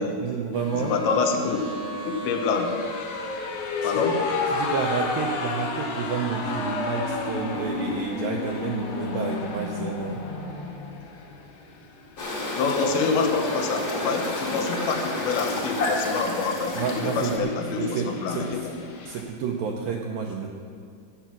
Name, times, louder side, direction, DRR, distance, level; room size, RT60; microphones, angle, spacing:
voice 1, 0.2-1.0 3.8-4.0 4.5-10.2 16.8-18.6 19.1-20.5, right 6 dB, 80° right, 1 dB, 2.1 m, -30 dB
sound 1, 0.5-19.2, left 3 dB, 65° left, 2.9 m, -33 dB
voice 2, 0.7-1.6 2.0-2.7 3.8-4.2 12.6-18.7, left 4 dB, 85° left, 4 dB, 3.3 m, -26 dB
sound 2, 12.2-17.4, left 1 dB, 40° left, 1.5 m, -30 dB
12.5 x 9.0 x 6.1 m, 2.3 s
omnidirectional pair, 5.0 m